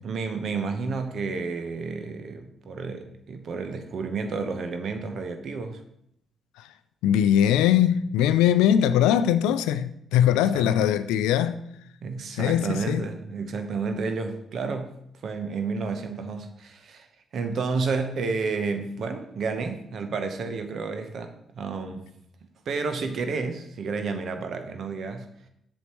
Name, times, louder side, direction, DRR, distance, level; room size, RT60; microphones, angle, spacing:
voice 1, 0.0-5.8 10.3-10.8 12.0-14.9 15.2-17.1 17.3-22.0 22.6-25.3, right 4 dB, 60° right, 1.0 m, -31 dB
voice 2, 7.0-11.6 12.4-13.0, left 10 dB, 85° left, 0.3 m, -21 dB
8.1 x 6.3 x 3.0 m
hypercardioid pair, 50°, 0 cm